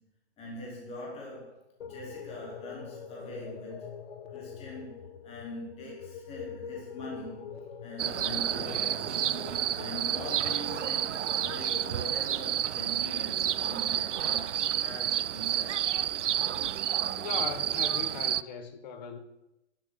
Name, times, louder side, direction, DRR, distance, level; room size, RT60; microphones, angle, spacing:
voice 1, 0.4-4.0 4.3-7.5 7.8-9.1 9.7-15.9, equal, 15° left, 4.1 m, -43 dB
sound 1, 1.8-11.9, left 6 dB, 55° left, 1.5 m, -44 dB
sound 2, 8.0-18.4, right 10 dB, 90° right, 0.6 m, -30 dB
voice 2, 17.2-19.2, left 6 dB, 40° left, 1.5 m, -38 dB
11.0 x 9.9 x 8.1 m
hypercardioid pair, 155°, 35 cm